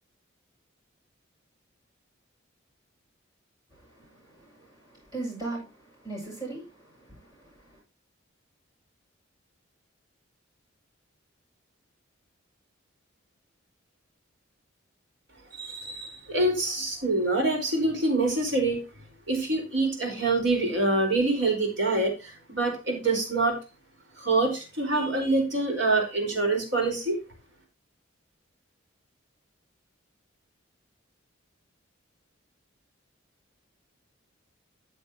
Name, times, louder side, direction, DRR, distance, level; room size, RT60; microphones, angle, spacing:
voice 1, 3.7-7.8, right 2 dB, 20° right, 7.2 m, -40 dB
voice 2, 15.5-18.8 19.3-23.6 24.2-27.2, right 2 dB, 60° right, 4.6 m, -26 dB
13.5 x 7.7 x 2.9 m
head